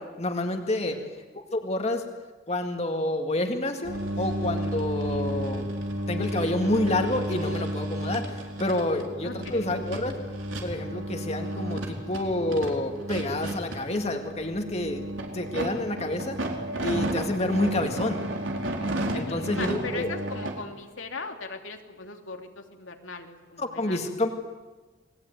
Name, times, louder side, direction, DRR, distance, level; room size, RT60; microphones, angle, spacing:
voice 1, 0.2-1.0 1.3-2.1 2.5-5.6 6.1-8.3 8.6-10.1 10.6-15.0 15.3-16.4 16.8-18.2 19.1-20.1 23.6-24.3, left 1 dB, 35° left, 4 dB, 2.2 m, -28 dB
sound 1, 3.8-20.5, right 1 dB, 80° right, 4.5 m, -32 dB
voice 2, 9.2-9.7 19.1-24.1, left 3 dB, 85° left, 3 dB, 2.9 m, -39 dB
29.0 x 21.0 x 9.4 m, 1.3 s
head